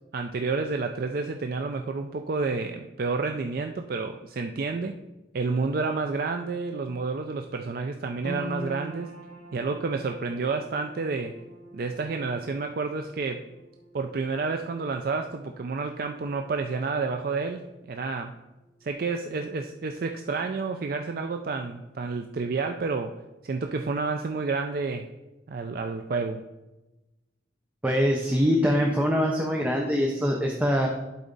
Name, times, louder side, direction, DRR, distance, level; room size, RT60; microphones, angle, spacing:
voice 1, 0.1-5.0 5.3-9.1 9.5-11.4 11.7-13.5 13.9-17.6 17.9-18.3 18.8-25.1 25.5-26.4, right 4 dB, 50° right, 5 dB, 0.4 m, -30 dB
sound 1, 8.2-20.6 20.9-21.9 22.3-22.4, right 1 dB, 40° left, 1.7 m, -45 dB
voice 2, 27.8-30.9, equal, 10° right, 0 dB, 0.6 m, -23 dB
11.5 x 4.1 x 3.9 m, 1.0 s
head